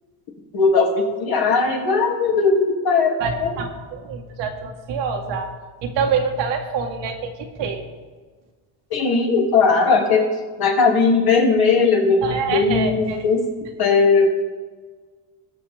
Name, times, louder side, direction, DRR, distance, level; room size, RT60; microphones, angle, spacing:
voice 1, 0.5-3.6 8.9-10.3 10.6-13.4 13.8-14.3, left 4 dB, 55° left, -1 dB, 2.7 m, -18 dB
voice 2, 3.2-5.5 5.8-7.8 12.2-13.2, right 5 dB, 80° right, 3 dB, 1.6 m, -26 dB
19.5 x 6.8 x 3.5 m, 1.5 s
cardioid pair, 120°, 43 cm